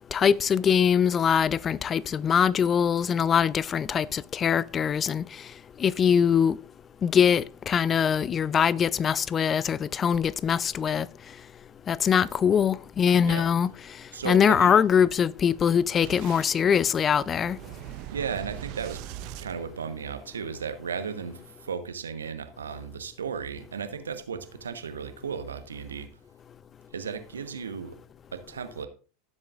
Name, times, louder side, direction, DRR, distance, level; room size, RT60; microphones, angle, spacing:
voice 1, 0.1-5.2 5.8-6.6 7.0-11.1 11.9-13.7 14.2-17.6, left 7 dB, 30° left, 0.4 m, -23 dB
voice 2, 14.1-14.8 18.1-19.0 19.4-26.1 26.9-28.0 28.3-28.9, right 6 dB, 80° right, 1.1 m, -35 dB
Boom, 16.0-20.4, right 15 dB, 55° right, 0.5 m, -41 dB
15.5 x 7.4 x 2.5 m
hypercardioid pair, 90°, 0 cm